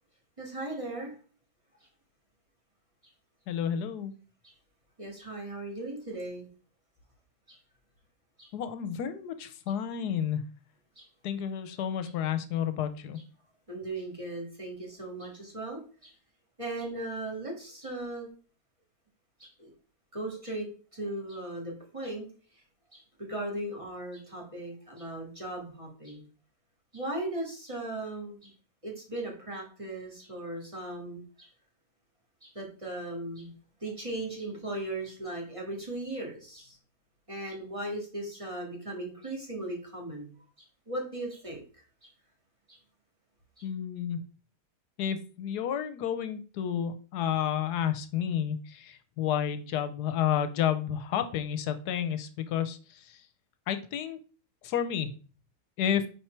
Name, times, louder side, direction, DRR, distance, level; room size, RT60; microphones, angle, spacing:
voice 1, 0.4-1.2 4.4-4.5 5.0-6.5 7.5-7.6 8.4-8.5 11.0-11.1 13.7-16.1 16.6-18.3 19.4-19.7 20.1-20.7 20.9-22.3 22.9-26.3 26.9-28.5 28.8-31.5 32.4-33.5 33.8-36.8 37.3-41.6 42.0-42.1 42.7-42.8 43.6-43.7, right 1 dB, 20° right, -2 dB, 1.8 m, -38 dB
voice 2, 3.5-4.1 8.5-10.4 11.2-13.2 43.6-44.2 45.0-53.2 53.7-54.2 54.6-55.1 55.8-56.0, left 9 dB, 80° left, 11 dB, 1.2 m, -31 dB
5.2 x 4.3 x 4.5 m, 0.39 s
omnidirectional pair, 1.7 m